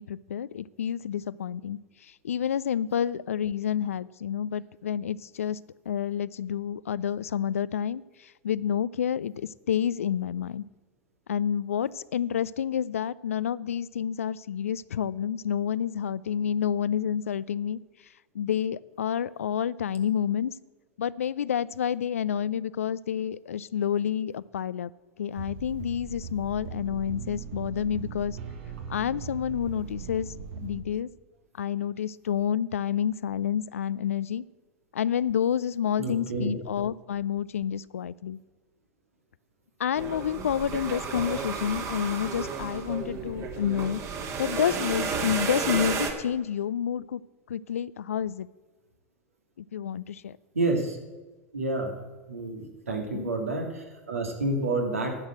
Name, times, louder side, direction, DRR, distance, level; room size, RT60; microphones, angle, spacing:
voice 1, 0.0-5.6 5.9-10.6 11.3-17.8 18.3-20.5 21.0-24.9 25.2-28.4 28.9-30.3 30.6-31.1 31.6-34.4 34.9-38.4 39.8-44.0 44.4-47.2 47.5-48.5 49.6-50.4 52.9-53.3, left 9 dB, 80° left, 20 dB, 0.4 m, -29 dB
sound 1, 25.4-30.8, right 6 dB, 65° right, 1.3 m, -39 dB
voice 2, 36.0-36.5 50.5-51.0 51.5-51.9 52.3-55.2, right 2 dB, 85° right, 3 dB, 2.3 m, -29 dB
sound 2, 40.0-46.1, right 5 dB, 40° right, 1.8 m, -32 dB
10.5 x 6.4 x 8.9 m, 1.2 s
hypercardioid pair, 90°, 7 cm